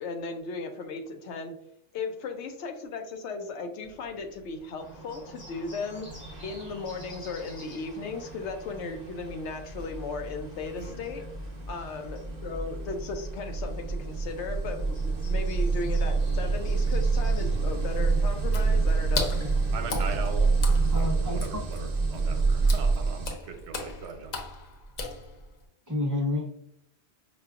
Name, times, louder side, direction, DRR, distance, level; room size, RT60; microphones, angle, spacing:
voice 1, 0.0-1.6 1.9-6.1 6.4-11.2 11.7-19.3, left 4 dB, 85° left, 6 dB, 0.9 m, -36 dB
Bird, 4.8-18.0, right 2 dB, 30° left, 1.0 m, -47 dB
sound 1, 5.6-5.7 6.1-23.4, right 4 dB, 60° right, 0.8 m, -28 dB
Water / Splash splatter, 18.5-25.7, left 3 dB, 50° left, 0.6 m, -37 dB
voice 2, 19.7-20.5 20.9-24.4, right 5 dB, 85° right, 6 dB, 0.9 m, -39 dB
voice 3, 20.9-21.4 25.9-26.5, left 2 dB, 25° right, -2 dB, 0.4 m, -29 dB
5.0 x 2.3 x 2.3 m, 0.71 s
omnidirectional pair, 1.1 m